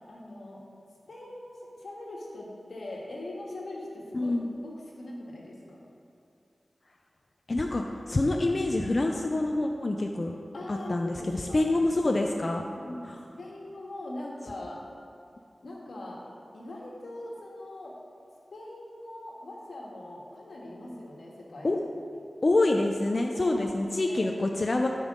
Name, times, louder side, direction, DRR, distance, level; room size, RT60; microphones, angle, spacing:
voice 1, 0.1-0.6 1.0-4.3 4.6-5.9 10.5-11.6 12.7-14.8 15.6-16.2 16.5-17.9 18.5-21.8 23.3-24.3, left 1 dB, 85° left, -3 dB, 1.5 m, -41 dB
voice 2, 4.1-4.5 7.5-10.3 10.7-12.6 21.6-21.8 22.4-24.9, left 2 dB, 45° left, 2 dB, 0.4 m, -26 dB
12.5 x 5.3 x 3.7 m, 2.5 s
wide cardioid pair, 70°, 0 cm